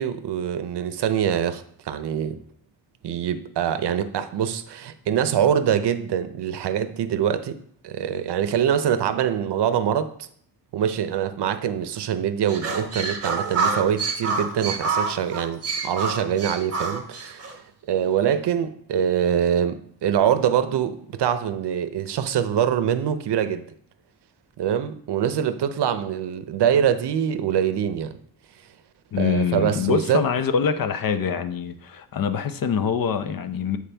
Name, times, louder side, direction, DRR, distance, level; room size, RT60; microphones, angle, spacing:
voice 1, 0.0-2.4 3.0-7.6 7.8-10.3 10.7-17.5 17.9-23.7 24.6-28.1 29.2-30.2, right 9 dB, 80° right, 11 dB, 0.7 m, -24 dB
sound 1, 12.5-17.5, right 4 dB, 35° right, 1.1 m, -27 dB
voice 2, 29.1-33.8, left 7 dB, 55° left, 9 dB, 0.7 m, -24 dB
8.6 x 4.7 x 3.4 m, 0.64 s
wide cardioid pair, 135°, 40 cm